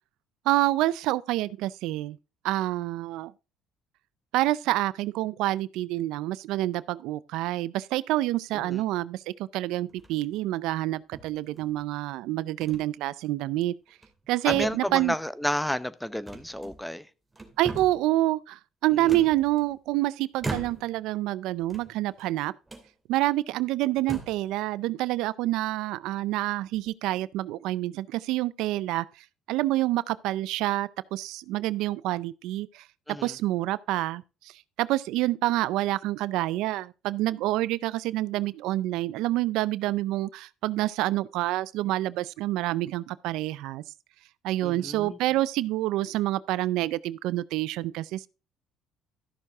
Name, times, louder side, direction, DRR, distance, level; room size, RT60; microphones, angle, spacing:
voice 1, 0.5-2.2 2.4-3.3 4.3-13.7 14.3-15.2 17.6-22.5 23.1-32.9 33.2-43.8 44.4-48.3, right 16 dB, 80° right, 0.4 m, -27 dB
sound 1, 9.9-10.3 11.1-11.9 12.6-12.8 13.2-13.4 13.9-14.3 14.5-15.2 16.3-17.0 17.3-18.1 19.1-19.9 20.4-21.1 21.6-22.3 22.7-22.9 23.5-23.6 24.0-24.5, right 3 dB, 15° right, 2.6 m, -39 dB
voice 2, 14.5-17.0 19.1-19.2 33.1-33.3 44.6-45.2, left 1 dB, 5° left, 0.8 m, -31 dB
13.5 x 6.6 x 3.5 m
cardioid pair, 110°, 0 cm